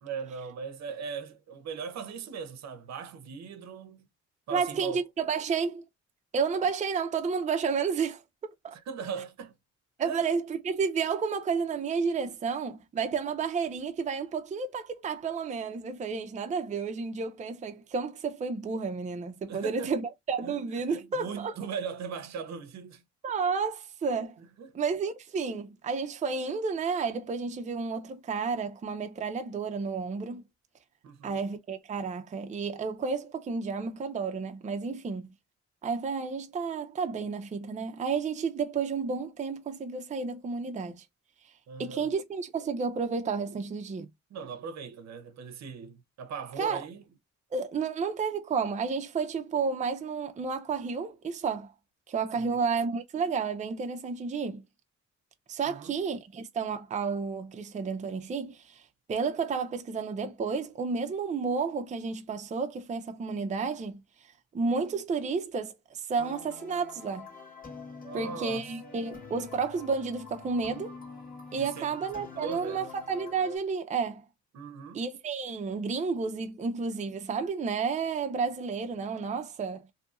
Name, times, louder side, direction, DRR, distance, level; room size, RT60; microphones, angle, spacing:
voice 1, 0.0-4.1 4.5-5.0 8.9-9.5 10.0-10.3 19.5-20.0 20.4-23.0 24.4-24.8 31.0-31.4 41.7-42.1 44.3-47.0 52.4-52.6 55.7-56.0 68.0-68.7 71.5-71.9 72.3-72.9 74.5-75.0, right 6 dB, 60° right, 0.7 m, -39 dB
voice 2, 4.5-5.8 6.3-8.2 8.6-8.7 10.0-21.5 23.2-24.4 24.7-30.4 31.2-35.3 35.8-41.0 41.8-44.1 46.6-46.8 47.5-51.7 52.1-54.6 55.5-64.0 64.5-67.3 68.1-71.0 71.5-74.2 74.9-79.9, right 5 dB, 25° right, 0.5 m, -31 dB
sound 1, 66.2-73.6, left 4 dB, 30° left, 1.4 m, -46 dB
2.7 x 2.5 x 2.3 m
cardioid pair, 90°, 30 cm